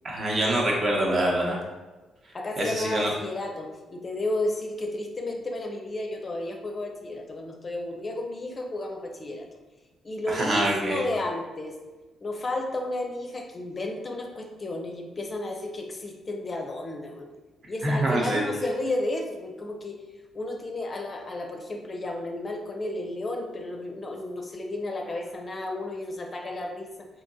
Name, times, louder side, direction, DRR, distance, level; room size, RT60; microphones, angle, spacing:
voice 1, 0.0-1.6 2.6-3.1 10.3-11.0 17.8-18.5, right 1 dB, 45° right, -2 dB, 0.8 m, -25 dB
voice 2, 2.3-9.5 10.0-11.7 12.2-17.3 17.7-20.0 20.3-27.1, left 2 dB, 35° left, 3 dB, 0.5 m, -32 dB
3.6 x 2.8 x 2.7 m, 1.2 s
cardioid pair, 90°, 0 cm